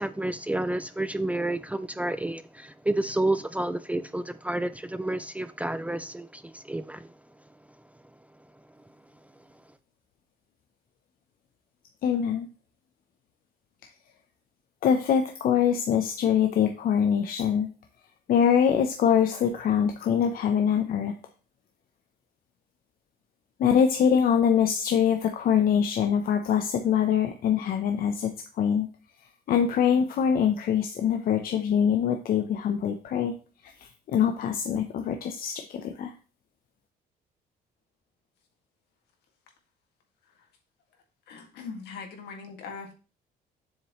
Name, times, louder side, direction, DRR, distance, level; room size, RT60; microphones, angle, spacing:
voice 1, 0.0-7.1, right 1 dB, 10° right, 12 dB, 0.4 m, -30 dB
voice 2, 12.0-12.5 14.8-17.7 18.3-21.1 23.6-28.9 29.5-33.3 33.6-36.1, left 8 dB, 60° left, 5 dB, 0.9 m, -24 dB
voice 3, 41.3-42.9, left 5 dB, 75° left, 3 dB, 2.2 m, -41 dB
7.4 x 6.7 x 3.2 m, 0.34 s
cardioid pair, 110°, 17 cm